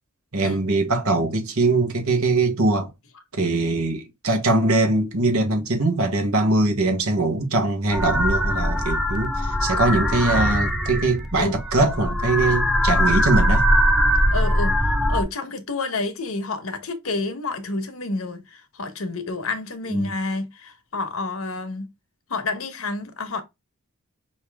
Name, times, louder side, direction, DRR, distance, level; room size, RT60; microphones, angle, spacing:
voice 1, 0.3-2.9 3.3-13.7 19.9-20.1, right 2 dB, 85° right, 1.4 m, -22 dB
sound 1, 7.9-15.2, equal, ahead, 0.5 m, -21 dB
voice 2, 14.3-21.9 22.3-23.4, left 3 dB, 75° left, 1.0 m, -29 dB
5.5 x 2.8 x 3.4 m
head